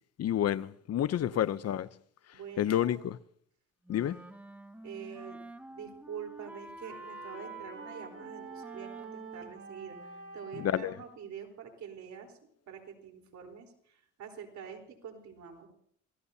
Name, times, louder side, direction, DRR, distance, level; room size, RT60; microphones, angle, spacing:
voice 1, 0.2-1.9 2.6-3.2 3.9-4.2 10.6-10.9, left 11 dB, 55° left, 0.7 m, -29 dB
voice 2, 1.3-1.6 2.3-3.0 4.8-5.4 5.7-15.7, right 7 dB, 65° right, 4.0 m, -46 dB
Wind instrument woodwind instrument, 3.9-10.5, right 1 dB, 5° right, 1.8 m, -49 dB
sound 1, 6.8-10.8, right 5 dB, 50° right, 6.2 m, -47 dB
28.5 x 17.0 x 2.8 m
cardioid pair, 90°, 30 cm